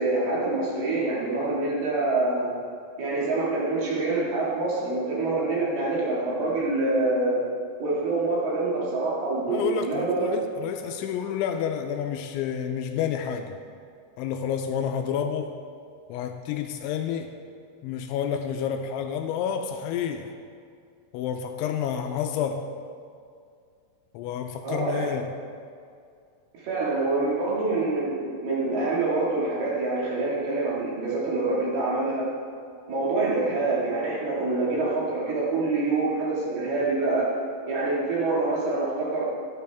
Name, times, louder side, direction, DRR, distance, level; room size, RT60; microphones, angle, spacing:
voice 1, 0.0-2.5 3.0-7.4 7.8-10.3 24.6-25.0 26.6-32.3 32.9-37.3 37.7-39.2, right 3 dB, 60° right, -6 dB, 3.5 m, -26 dB
voice 2, 9.5-13.6 14.2-15.5 16.1-17.4 17.8-20.3 21.1-22.6 24.1-25.3, left 8 dB, 85° left, 5 dB, 2.8 m, -29 dB
13.5 x 11.0 x 3.5 m, 2.3 s
omnidirectional pair, 5.6 m